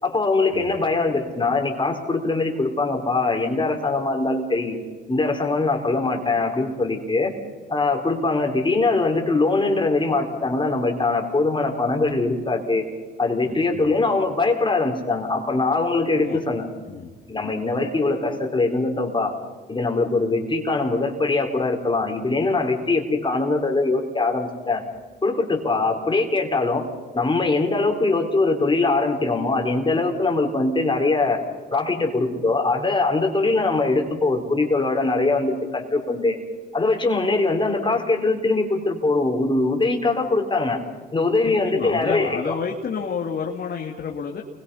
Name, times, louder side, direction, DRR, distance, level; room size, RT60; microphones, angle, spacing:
voice 1, 0.0-4.8 5.1-7.3 7.7-12.8 13.2-16.6 17.3-19.3 19.7-24.8 25.2-26.9 27.1-31.4 31.7-36.4 36.7-40.8 41.1-42.6, left 3 dB, 25° left, 2 dB, 4.4 m, -22 dB
voice 2, 13.4-13.9 16.1-16.4 16.9-17.1 41.4-44.4, left 6 dB, 55° left, 1 dB, 2.5 m, -30 dB
29.0 x 22.5 x 5.7 m, 1.4 s
cardioid pair, 90°, 20 cm